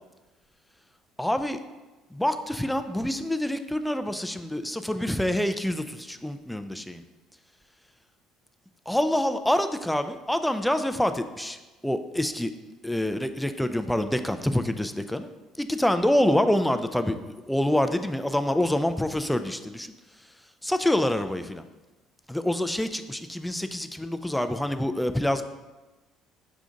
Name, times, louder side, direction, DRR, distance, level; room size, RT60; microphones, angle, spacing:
voice 1, 1.2-1.6 2.1-7.0 8.9-11.6 11.8-12.5 12.8-15.3 15.5-19.9 20.6-21.6 22.3-25.4, left 1 dB, 5° left, 9 dB, 0.3 m, -26 dB
5.1 x 2.4 x 3.8 m, 1.2 s
hypercardioid pair, 60°, 0 cm